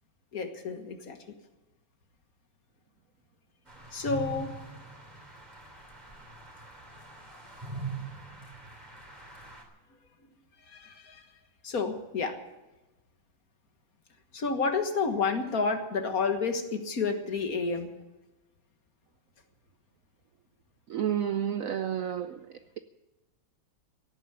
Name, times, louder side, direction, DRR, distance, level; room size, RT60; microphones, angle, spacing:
voice 1, 0.3-1.2 3.9-4.6 10.7-11.2 11.6-12.4 14.3-17.9, left 4 dB, 50° left, 7 dB, 1.8 m, -30 dB
sound 1, 3.7-9.6, right 3 dB, 20° right, 3.0 m, -42 dB
voice 2, 20.9-22.8, right 9 dB, 65° right, 11 dB, 0.8 m, -31 dB
17.0 x 9.2 x 8.7 m, 1.1 s
omnidirectional pair, 2.0 m